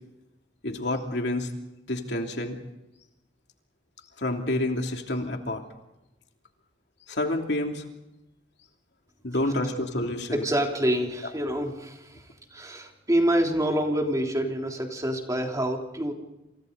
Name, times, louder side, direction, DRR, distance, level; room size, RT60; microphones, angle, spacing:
voice 1, 0.6-1.5 1.9-2.6 4.2-5.6 7.1-7.8 9.2-10.4, left 1 dB, 65° left, 3 dB, 3.0 m, -28 dB
voice 2, 10.3-12.2 12.5-16.1, right 1 dB, 20° right, 1 dB, 3.5 m, -26 dB
29.0 x 27.5 x 4.1 m, 0.95 s
head